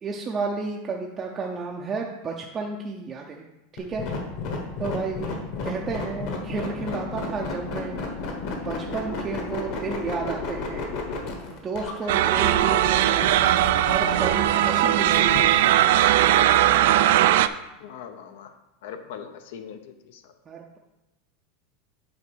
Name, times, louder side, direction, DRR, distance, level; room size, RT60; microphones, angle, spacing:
voice 1, 0.0-3.4 3.7-4.1 4.8-8.0 8.5-10.9 11.5-13.3 13.8-15.7 20.5-20.8, right 4 dB, 15° right, -1 dB, 0.5 m, -32 dB
sound 1, 3.8-15.4, left 4 dB, 45° left, 1.3 m, -32 dB
sound 2, 12.1-17.5, right 13 dB, 65° right, 0.3 m, -19 dB
voice 2, 17.8-18.6 18.8-20.3, left 7 dB, 65° left, 8 dB, 0.6 m, -41 dB
8.7 x 3.6 x 6.1 m, 0.98 s
supercardioid pair, 170°, 0 cm